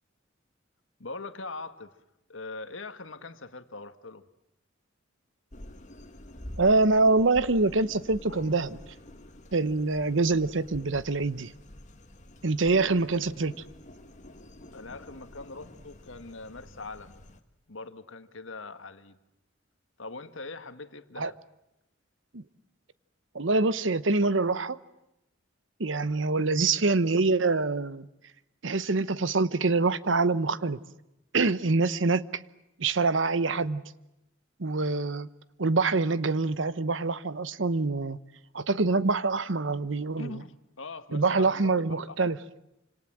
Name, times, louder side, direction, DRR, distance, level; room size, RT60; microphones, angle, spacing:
voice 1, 1.0-2.0 2.3-4.2 14.7-17.2 17.7-19.2 20.0-21.4 40.2-42.4, left 3 dB, 80° left, 1.7 m, -42 dB
sound 1, 5.5-17.4, left 1 dB, 40° left, 1.9 m, -48 dB
voice 2, 6.6-8.8 9.5-11.5 12.4-13.5 21.2-21.3 22.3-22.4 23.3-24.8 25.8-28.1 28.6-30.8 31.3-32.2 32.8-33.8 34.6-35.3 35.6-38.2 38.5-40.3 41.1-42.4, right 3 dB, 70° right, 1.0 m, -25 dB
28.5 x 26.5 x 7.5 m
head